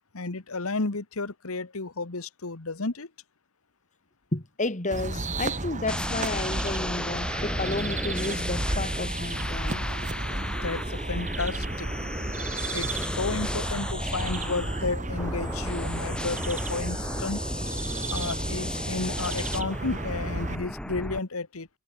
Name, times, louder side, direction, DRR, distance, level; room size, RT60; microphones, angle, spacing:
voice 1, 0.1-3.1 9.7-11.9 12.7-17.4 18.1-21.7, left 3 dB, 75° left, 1.4 m, -32 dB
voice 2, 4.3-9.9, left 2 dB, 35° left, 2.6 m, -32 dB
sound 1, 4.9-20.6, right 2 dB, 35° right, 2.8 m, -33 dB
sound 2, 5.9-21.2, left 1 dB, 5° left, 1.0 m, -34 dB
head